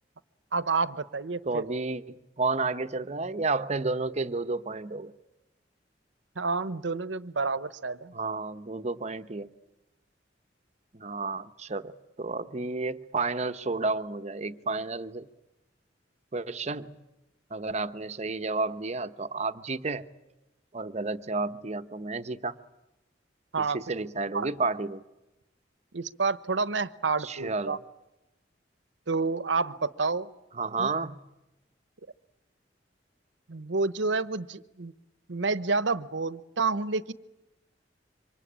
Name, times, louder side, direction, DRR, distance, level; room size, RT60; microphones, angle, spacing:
voice 1, 0.5-1.6 6.4-8.1 23.5-23.8 24.3-24.5 25.9-27.8 29.1-30.3 30.8-30.9 33.5-34.9 35.3-37.1, right 4 dB, 90° right, 1.0 m, -29 dB
voice 2, 1.4-5.1 8.1-9.5 10.9-15.3 16.3-17.0 17.5-20.1 20.7-22.6 23.6-25.0 27.2-27.8 30.5-31.2, right 3 dB, 40° right, 0.9 m, -31 dB
27.0 x 25.0 x 8.8 m
head